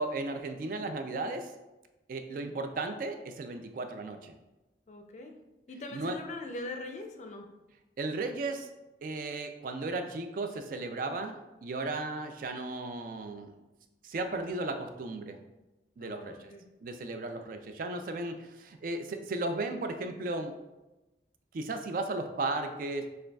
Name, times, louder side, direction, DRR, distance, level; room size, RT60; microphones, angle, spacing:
voice 1, 0.0-1.5 2.1-4.3 5.9-6.2 8.0-8.7 9.0-13.5 14.0-15.4 16.0-16.5 16.8-20.6 21.5-23.1, right 2 dB, 50° right, 7 dB, 0.3 m, -35 dB
voice 2, 4.9-5.3 5.7-7.5 16.0-16.6, left 2 dB, 40° left, 4 dB, 0.4 m, -41 dB
6.4 x 2.3 x 2.2 m, 1.0 s
head